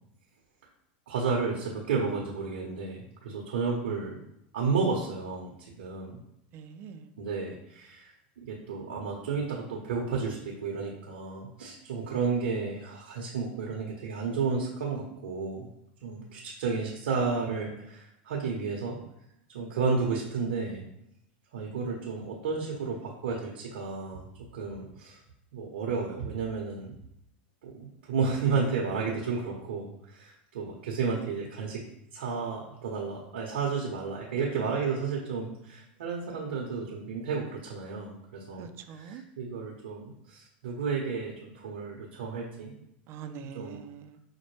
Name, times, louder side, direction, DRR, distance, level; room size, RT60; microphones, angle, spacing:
voice 1, 1.1-4.2 4.5-6.2 7.2-8.1 8.5-15.7 16.0-19.0 19.5-20.9 21.5-24.3 24.5-25.2 25.5-26.9 27.6-31.8 32.1-42.7 43.5-43.8, right 5 dB, 85° right, -2 dB, 0.7 m, -32 dB
voice 2, 6.5-7.1 38.6-39.2 43.1-44.2, right 7 dB, 45° right, 8 dB, 0.4 m, -43 dB
5.2 x 2.1 x 3.1 m, 0.78 s
supercardioid pair, 120°, 6 cm